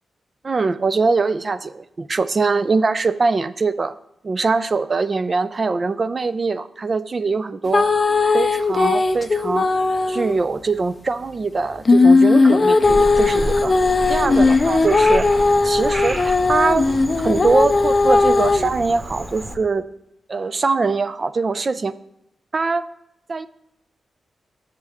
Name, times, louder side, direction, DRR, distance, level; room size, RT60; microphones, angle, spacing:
voice 1, 0.4-3.9 4.2-7.9 8.3-9.7 10.1-13.7 14.1-15.3 15.6-16.9 17.2-19.9 20.3-21.9 22.5-22.9 23.3-23.5, right 4 dB, 45° right, 14 dB, 0.3 m, -22 dB
sound 1, 7.7-10.4 11.8-18.7, left 3 dB, 40° left, 0.4 m, -17 dB
Frog, 12.8-19.5, equal, 20° right, 0.9 m, -30 dB
7.1 x 6.6 x 3.4 m, 0.79 s
cardioid pair, 65°, 0 cm